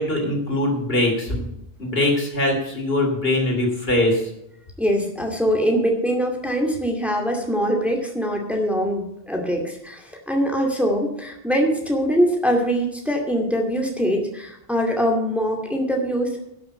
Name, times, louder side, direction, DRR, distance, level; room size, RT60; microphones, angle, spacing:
voice 1, 0.0-1.5 1.8-4.3, left 1 dB, 70° left, 1 dB, 3.1 m, -22 dB
voice 2, 4.8-16.4, equal, ahead, 1 dB, 2.3 m, -23 dB
11.5 x 7.0 x 8.0 m, 0.81 s
omnidirectional pair, 1.0 m